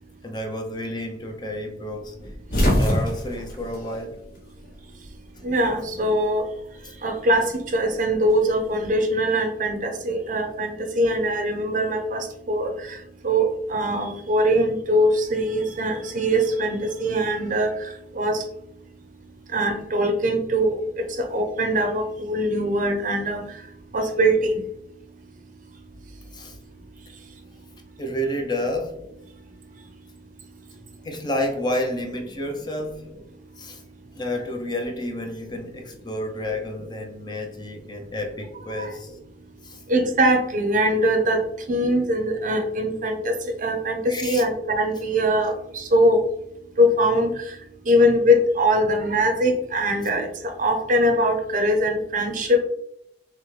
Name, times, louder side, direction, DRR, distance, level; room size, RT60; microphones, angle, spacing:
voice 1, 0.2-2.1 2.5-4.2 26.3-26.6 28.0-29.0 31.0-33.0 33.6-33.8 34.1-39.1 39.6-39.8 44.1-44.4, left 1 dB, 25° left, 3 dB, 0.6 m, -30 dB
sound 1, 2.2-4.7 5.0-6.1 7.3-8.7, equal, 55° left, 1.2 m, -25 dB
voice 2, 5.4-6.4 7.0-7.5 7.7-13.0 13.2-17.7 18.2-18.4 19.5-23.4 23.9-24.6 38.7-38.9 39.9-41.4 41.7-43.3 43.6-46.2 46.8-47.4 47.9-52.6, equal, 50° right, 5 dB, 0.6 m, -22 dB
5.9 x 2.2 x 3.2 m, 0.76 s
head